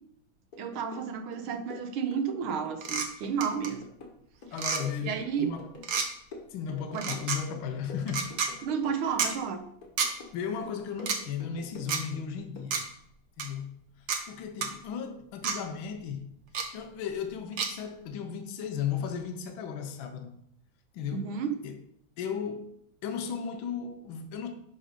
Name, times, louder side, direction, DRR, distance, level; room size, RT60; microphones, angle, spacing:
sound 1, 0.5-1.1 1.3-2.9 3.2-6.0 6.3-7.3 7.5-9.1 9.4-10.4 10.6-12.2 12.6-12.7, left 3 dB, 50° left, 1.7 m, -47 dB
voice 1, 0.6-3.8 5.0-5.5 6.9-7.2 8.6-9.6 21.1-21.5, right 7 dB, 80° right, 1.8 m, -31 dB
sound 2, 2.8-3.1 3.4-3.7 4.5-4.8 5.8-6.1 6.9-7.4 8.1-8.5 9.2-9.3 10.0-10.1 11.0-11.2 11.9-12.0 12.7-12.8 13.4-13.5 14.1-14.2 14.6-14.7 15.4-15.6 16.5-16.7 17.6-17.7, right 6 dB, 55° right, 1.4 m, -29 dB
voice 2, 4.5-5.7 6.5-8.4 10.3-12.8 13.4-13.8 14.3-16.4 16.7-20.4 20.9-21.8 22.2-22.7 23.0-24.5, left 7 dB, 75° left, 1.7 m, -35 dB
11.5 x 4.2 x 5.1 m
omnidirectional pair, 2.3 m